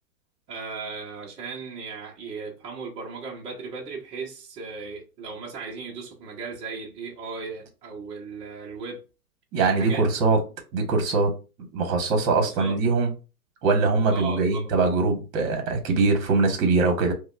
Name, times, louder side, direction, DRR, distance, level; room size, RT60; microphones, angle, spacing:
voice 1, 0.5-9.0 9.7-10.4 12.4-12.8 14.1-14.7, right 4 dB, 15° right, 0.6 m, -37 dB
voice 2, 9.5-10.4 10.7-11.3 11.7-13.1 13.6-17.1, right 3 dB, 30° right, 1.2 m, -22 dB
4.9 x 2.2 x 2.4 m
hypercardioid pair, 130°, 47 cm